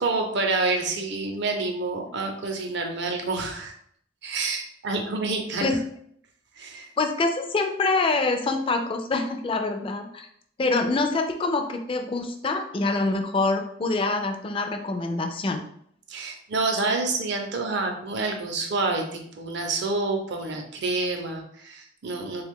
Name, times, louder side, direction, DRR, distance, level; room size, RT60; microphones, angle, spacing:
voice 1, 0.0-3.7 4.2-5.7 6.6-6.9 16.1-22.5, right 3 dB, 60° right, 3 dB, 0.6 m, -28 dB
voice 2, 7.0-10.3 10.6-15.6, left 3 dB, 25° left, 5 dB, 0.3 m, -25 dB
3.3 x 2.3 x 3.5 m, 0.67 s
head